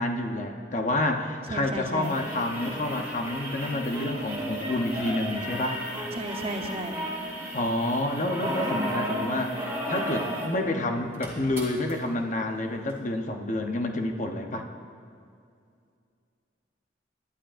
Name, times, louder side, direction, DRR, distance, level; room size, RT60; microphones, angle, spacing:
voice 1, 0.0-5.8 7.5-9.5 9.9-14.6, left 1 dB, 40° left, 4 dB, 0.9 m, -29 dB
voice 2, 1.5-2.1 6.2-7.0, right 1 dB, 30° right, 3 dB, 0.9 m, -33 dB
sound 1, 2.0-10.6 10.9-11.0 11.1-11.9 12.9-13.0, equal, 15° right, 3.1 m, -33 dB
22.5 x 11.5 x 2.6 m, 2.4 s
head